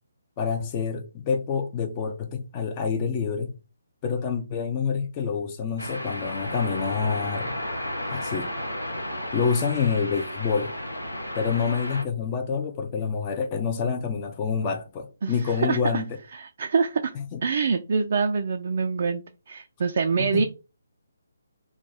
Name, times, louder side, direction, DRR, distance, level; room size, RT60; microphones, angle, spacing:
voice 1, 0.4-3.5 4.0-7.5 8.1-8.5 9.3-10.7 11.3-16.1 17.3-17.4 20.2-20.4, left 6 dB, 25° left, 0.4 m, -27 dB
sound 1, 5.8-12.0, left 1 dB, 85° left, 0.7 m, -33 dB
voice 2, 15.2-16.0 16.3-17.1 17.4-20.4, right 5 dB, 45° right, 0.3 m, -25 dB
2.3 x 2.2 x 3.8 m
figure-of-eight pair, 140°, 0 cm